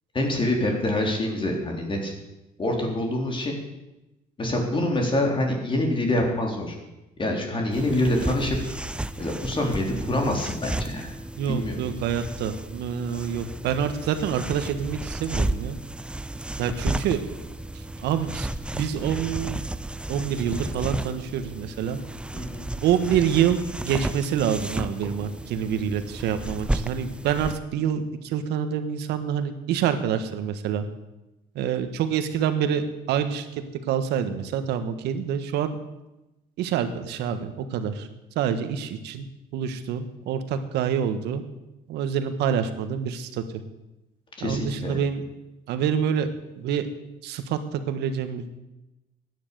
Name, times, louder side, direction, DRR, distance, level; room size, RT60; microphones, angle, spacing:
voice 1, 0.1-2.1 2.6-3.6 4.4-6.7 7.2-8.6 9.2-11.1 11.5-11.8 22.3-22.7 44.4-45.0, left 1 dB, 30° left, 2 dB, 3.9 m, -26 dB
sound 1, 7.7-27.6, right 1 dB, 5° right, 0.6 m, -33 dB
voice 2, 11.3-15.8 16.6-17.2 17.7-18.5 18.7-19.6 20.1-22.0 22.8-30.9 31.5-35.8 36.6-38.1 38.3-39.3 39.5-41.4 41.9-43.4 44.4-45.2 45.7-46.3 46.6-46.9 47.2-48.6, right 8 dB, 85° right, 9 dB, 1.6 m, -27 dB
15.0 x 10.0 x 6.9 m, 0.97 s
cardioid pair, 110°, 17 cm